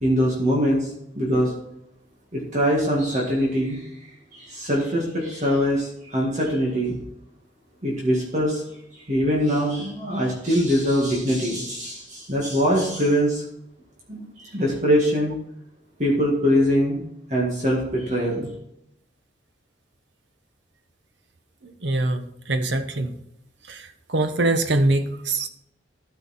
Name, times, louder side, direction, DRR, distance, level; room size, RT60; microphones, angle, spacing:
voice 1, 0.0-0.9 1.2-1.5 2.3-3.8 4.5-5.9 6.1-6.9 7.8-8.6 9.1-13.4 14.1-14.2 14.5-15.3 16.0-17.0 17.3-18.5, equal, 40° right, -3 dB, 1.9 m, -22 dB
voice 2, 21.8-23.1 23.7-25.5, right 2 dB, 80° right, 8 dB, 1.0 m, -23 dB
13.0 x 5.7 x 4.3 m, 0.80 s
head